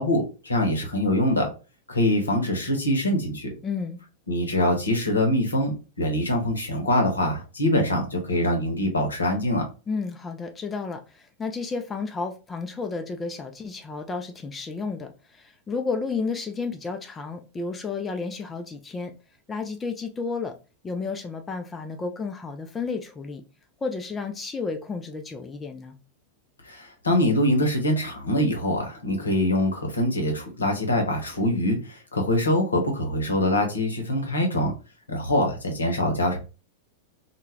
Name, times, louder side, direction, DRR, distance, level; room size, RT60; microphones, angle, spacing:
voice 1, 0.0-1.5 1.9-3.5 4.3-9.6 26.6-34.7 35.1-36.4, left 1 dB, 75° left, 3 dB, 0.7 m, -24 dB
voice 2, 3.6-4.0 9.9-19.1 19.5-20.5 20.8-23.4 23.8-26.0, left 4 dB, 15° left, 5 dB, 0.3 m, -32 dB
2.2 x 2.1 x 3.2 m, 0.32 s
figure-of-eight pair, 90°, 0 cm